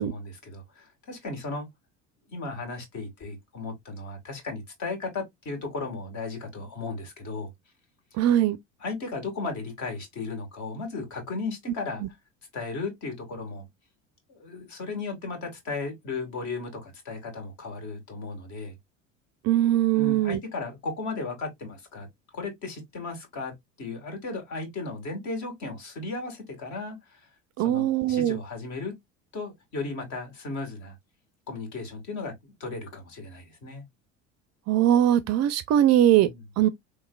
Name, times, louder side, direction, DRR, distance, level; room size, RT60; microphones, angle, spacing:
voice 1, 0.0-1.7 2.3-7.5 8.8-12.0 12.5-13.7 14.3-18.7 19.9-22.1 22.3-23.5 23.8-27.2 27.6-28.9 29.3-30.9 31.5-33.9 36.2-36.4, left 3 dB, 50° left, 1.8 m, -35 dB
voice 2, 8.2-8.6 19.4-20.4 27.6-28.4 34.7-36.3 36.6-36.7, right 12 dB, 45° right, 0.5 m, -21 dB
3.5 x 3.1 x 2.2 m
hypercardioid pair, 80°, 38 cm